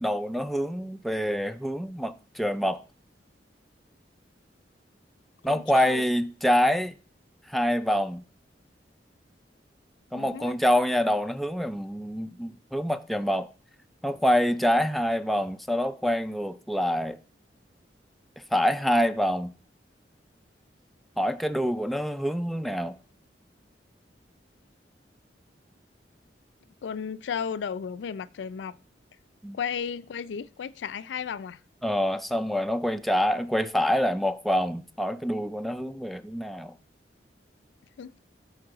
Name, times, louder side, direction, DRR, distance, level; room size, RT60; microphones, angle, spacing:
voice 1, 0.0-2.8 5.4-7.0 7.5-8.2 10.1-13.5 14.0-17.2 18.5-19.5 21.2-23.0 29.4-29.6 31.8-36.7, equal, ahead, 0.4 m, -26 dB
voice 2, 5.5-6.0 10.1-10.5 26.8-28.7 29.5-31.6 38.0-38.2, left 7 dB, 80° left, 0.4 m, -34 dB
13.5 x 4.6 x 3.9 m
head